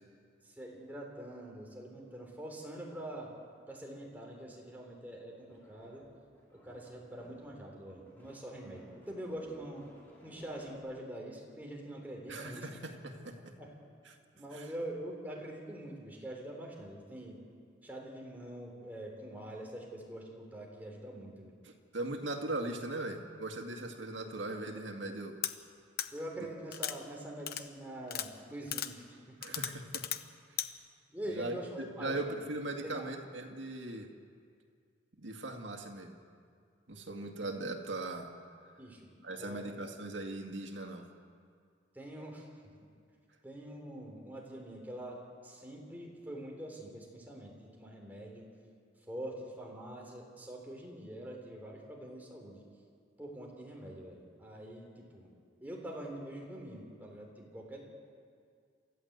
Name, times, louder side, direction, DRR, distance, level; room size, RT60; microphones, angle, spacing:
voice 1, 0.4-3.3 3.7-6.1 6.5-9.9 10.2-12.7 13.4-13.7 14.3-17.4 17.8-21.5 26.1-29.6 31.1-32.4 32.8-33.1 38.8-39.1 39.4-39.7 41.9-42.7 43.4-48.5 49.1-52.7 53.2-55.3 55.6-57.8, right 1 dB, 10° right, -1 dB, 3.7 m, -44 dB
sound 1, 5.5-7.6 7.8-10.7, equal, 10° left, 5.2 m, -58 dB
voice 2, 12.3-13.6 14.1-14.2 14.5-14.7 21.6-25.4 26.4-26.5 29.4-30.1 31.3-34.1 35.2-36.2 36.9-38.3 39.2-41.1, right 2 dB, 85° right, 4 dB, 2.2 m, -39 dB
sound 2, 25.4-25.5 26.0-26.1 26.7-26.9 27.5-27.6 28.1-28.3 28.7-28.9 29.4-30.2 30.6-30.7, left 11 dB, 50° left, 0.9 m, -35 dB
28.0 x 14.0 x 8.1 m, 2.2 s
head